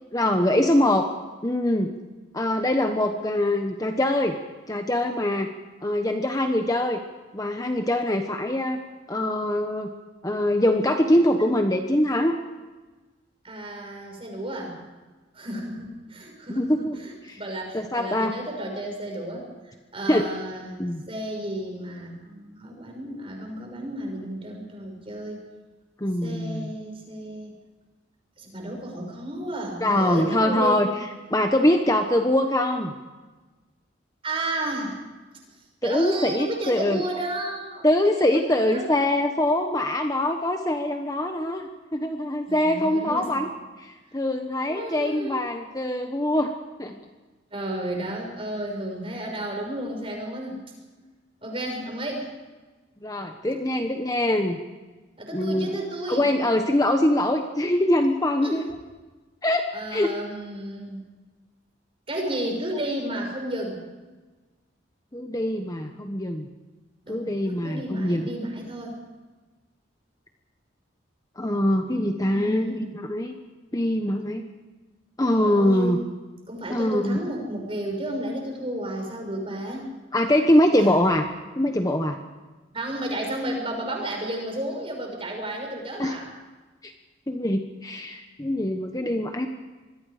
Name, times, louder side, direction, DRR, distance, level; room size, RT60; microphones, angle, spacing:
voice 1, 0.1-1.1 1.4-1.9 2.3-4.4 4.7-5.5 5.8-7.0 7.3-8.8 9.1-9.9 10.2-12.4 16.5-17.0 17.2-17.4 17.7-18.4 20.1-20.3 20.8-21.0 26.0-26.7 29.8-30.9 31.3-32.9 35.8-37.0 37.8-43.5 43.8-46.5 46.8-47.0 53.0-54.6 55.3-55.8 56.1-58.6 59.4-59.6 59.9-60.1 65.1-66.5 67.1-68.2 71.4-73.3 73.7-74.5 75.2-76.0 76.7-77.2 80.1-81.3 81.6-82.2 86.0-86.2 86.8-86.9 87.3-89.5, left 1 dB, 20° left, 5 dB, 1.2 m, -23 dB
voice 2, 13.4-14.8 15.3-25.4 26.2-27.5 28.4-30.8 34.2-35.0 35.8-38.9 42.5-43.5 44.7-45.4 47.5-50.6 51.4-52.3 55.2-56.3 58.4-58.6 59.7-61.0 62.1-63.8 67.1-69.0 72.3-72.9 75.4-76.0 76.5-79.9 82.7-86.3, right 1 dB, 30° right, 2 dB, 6.0 m, -32 dB
26.5 x 22.0 x 5.1 m, 1.3 s
head